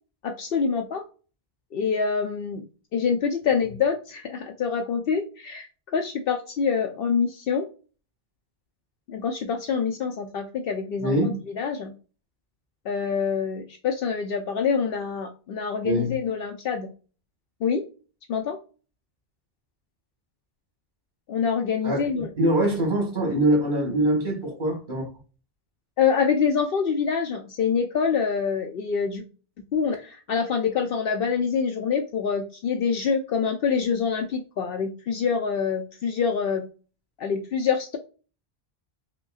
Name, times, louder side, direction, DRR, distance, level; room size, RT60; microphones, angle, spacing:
voice 1, 0.2-1.0 1.7-2.6 2.9-5.7 5.9-7.7 9.1-11.9 12.9-16.9 17.6-17.8 18.3-18.6 21.3-22.3 26.0-29.2 29.7-36.7 37.2-38.0, left 6 dB, 70° left, 0.7 m, -26 dB
voice 2, 11.0-11.4 15.8-16.1 21.8-25.0, right 1 dB, 50° right, 1.8 m, -23 dB
5.1 x 2.2 x 2.3 m
omnidirectional pair, 1.0 m